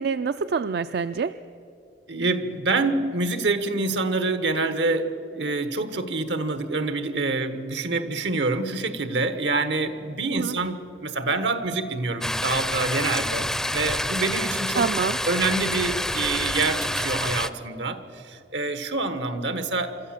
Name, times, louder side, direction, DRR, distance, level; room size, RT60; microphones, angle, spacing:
voice 1, 0.0-1.3 10.3-10.6 14.7-15.2, right 5 dB, 65° right, 12 dB, 0.4 m, -26 dB
voice 2, 2.1-14.9 15.3-20.0, right 3 dB, 85° right, 11 dB, 1.3 m, -26 dB
sound 1, 12.2-17.5, left 1 dB, 5° left, 0.4 m, -27 dB
25.5 x 13.5 x 7.6 m, 2.8 s
head